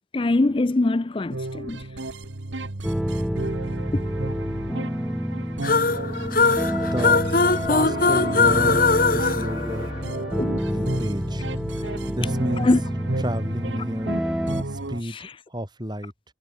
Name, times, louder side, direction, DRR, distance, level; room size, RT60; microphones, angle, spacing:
voice 1, 0.1-1.9 3.9-4.0 10.4-10.6 12.6-12.8 15.0-15.3, left 2 dB, 30° left, 0.4 m, -23 dB
sound 1, 1.3-15.0, right 2 dB, 80° right, 1.5 m, -33 dB
sound 2, 2.8-14.6, equal, ahead, 1.0 m, -29 dB
sound 3, 5.6-10.4, left 4 dB, 50° left, 2.6 m, -21 dB
voice 2, 6.6-7.2 7.6-9.9 10.7-11.5 12.1-12.7 13.2-14.2 14.7-16.1, equal, 25° right, 6.7 m, -31 dB
head